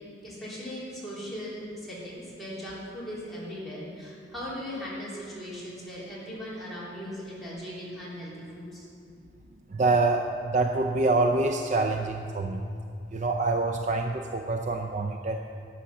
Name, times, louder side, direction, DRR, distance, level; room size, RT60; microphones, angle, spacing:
voice 1, 0.2-8.9, equal, ahead, -10 dB, 3.5 m, -38 dB
voice 2, 9.7-12.6 13.1-15.4, right 3 dB, 40° right, 4 dB, 0.5 m, -26 dB
11.5 x 9.0 x 6.0 m, 2.5 s
head